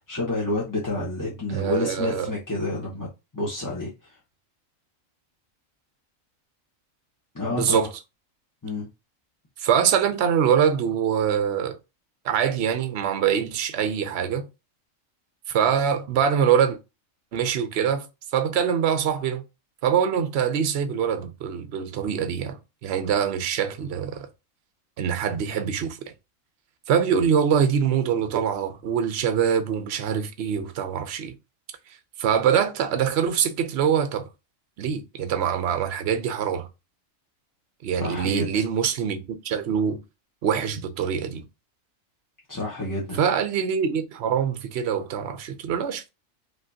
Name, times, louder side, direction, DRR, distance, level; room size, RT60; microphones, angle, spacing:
voice 1, 0.0-3.1 3.3-4.2 7.3-7.9 8.6-8.9 38.0-38.6 42.5-43.2, left 2 dB, 15° left, 1.1 m, -29 dB
voice 2, 1.5-2.3 7.5-7.9 9.6-11.8 12.2-14.5 15.5-16.8 17.3-18.1 18.3-19.4 19.8-24.3 25.0-26.0 26.9-31.3 32.2-34.3 34.8-36.7 37.8-40.0 40.4-41.4 43.2-46.1, right 8 dB, 60° right, 0.9 m, -24 dB
5.0 x 3.1 x 2.7 m
omnidirectional pair, 1.4 m